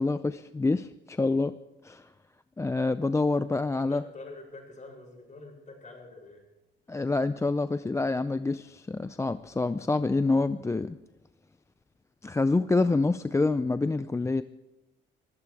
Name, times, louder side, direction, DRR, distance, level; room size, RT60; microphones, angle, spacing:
voice 1, 0.0-1.5 1.8-2.1 2.6-4.0 6.9-11.0 12.2-14.4, left 3 dB, 15° left, 12 dB, 0.4 m, -27 dB
voice 2, 3.9-6.4, left 2 dB, 40° left, 0 dB, 7.2 m, -46 dB
23.5 x 15.5 x 3.5 m, 1.0 s
cardioid pair, 90°, 20 cm